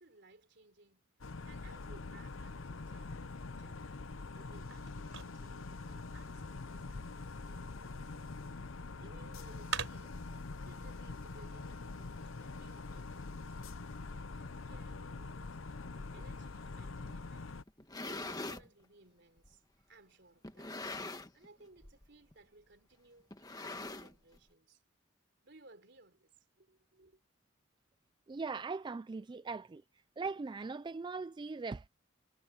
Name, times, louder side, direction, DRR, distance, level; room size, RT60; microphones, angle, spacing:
voice 1, 0.0-3.9 4.3-8.3 9.0-10.2 10.6-13.6 14.1-17.5 18.1-20.8 21.3-24.8 25.4-27.2, right 2 dB, 60° right, 3.7 m, -61 dB
sound 1, 1.2-17.6, left 3 dB, 85° left, 0.8 m, -44 dB
sound 2, 3.6-10.4, right 6 dB, 85° right, 4.1 m, -48 dB
sound 3, 17.7-18.7 19.4-19.5 20.4-21.5 21.8-22.1 22.3-22.4 23.3-24.4, left 2 dB, 20° left, 1.5 m, -43 dB
voice 2, 28.3-29.8 30.2-31.9, right 4 dB, 25° right, 0.3 m, -40 dB
head